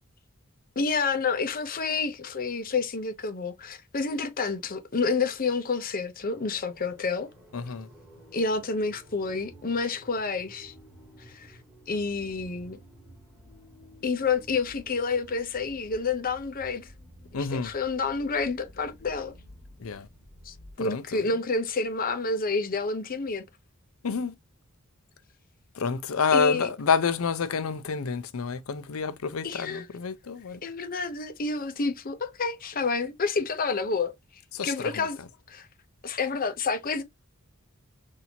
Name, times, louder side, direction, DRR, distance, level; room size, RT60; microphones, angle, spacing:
voice 1, 0.8-7.3 8.3-10.7 11.3-11.5 11.9-12.8 14.0-16.9 17.3-19.3 20.5-23.4 26.3-26.7 29.4-29.9 30.6-34.1 34.6-35.2 35.5-35.7 36.0-37.0, left 4 dB, 45° left, 0.7 m, -29 dB
sound 1, 6.3-20.7, equal, 5° right, 2.3 m, -52 dB
voice 2, 7.5-7.9 17.3-17.7 19.8-20.1 20.8-21.2 24.0-24.3 25.8-30.6 34.5-35.1, left 5 dB, 80° left, 0.6 m, -28 dB
4.3 x 2.7 x 2.7 m
head